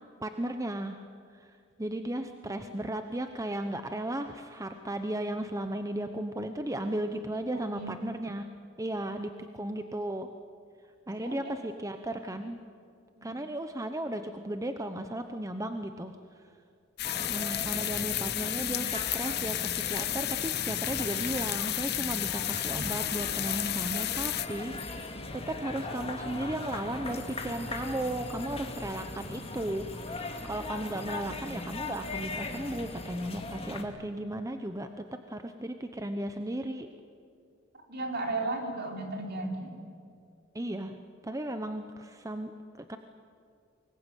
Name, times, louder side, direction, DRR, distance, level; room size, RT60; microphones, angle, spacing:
voice 1, 0.2-1.0 1.3-8.5 8.8-10.3 11.1-12.6 13.2-16.4 17.3-36.9 40.5-43.0, right 1 dB, 15° right, 7 dB, 0.9 m, -35 dB
voice 2, 2.3-2.7 7.5-7.9 11.2-11.5 13.2-13.3 17.0-17.1 37.9-39.7, right 2 dB, 50° right, 2 dB, 4.1 m, -35 dB
sound 1, 17.0-24.5, left 14 dB, 50° left, 0.8 m, -32 dB
sound 2, 17.0-33.8, left 2 dB, 30° left, 2.3 m, -39 dB
25.0 x 21.0 x 9.2 m, 2.4 s
head